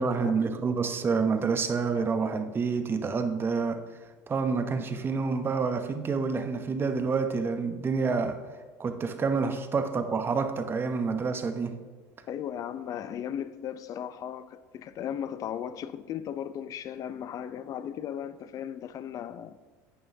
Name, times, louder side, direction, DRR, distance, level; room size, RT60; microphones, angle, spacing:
voice 1, 0.0-3.8 4.3-8.4 8.8-11.8, right 5 dB, 30° right, 0.9 m, -28 dB
voice 2, 12.3-19.6, left 9 dB, 45° left, 0.5 m, -36 dB
11.5 x 8.8 x 2.8 m
supercardioid pair, 95°, 8 cm